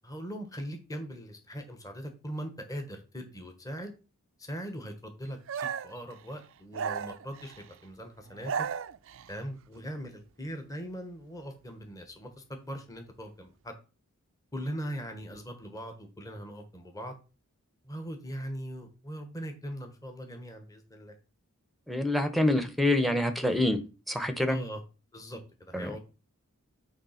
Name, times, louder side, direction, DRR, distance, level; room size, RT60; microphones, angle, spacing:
voice 1, 0.0-3.9 4.4-8.7 9.3-13.8 14.5-17.1 17.8-21.2 24.5-24.8 25.1-26.0, equal, 15° left, 5 dB, 1.1 m, -40 dB
sound 1, 5.5-6.0 6.7-7.7 8.3-9.3, right 7 dB, 60° right, 0.4 m, -35 dB
voice 2, 21.9-23.8 24.1-24.6 25.7-25.9, left 1 dB, ahead, 8 dB, 0.9 m, -26 dB
9.5 x 3.3 x 5.7 m, 0.33 s
head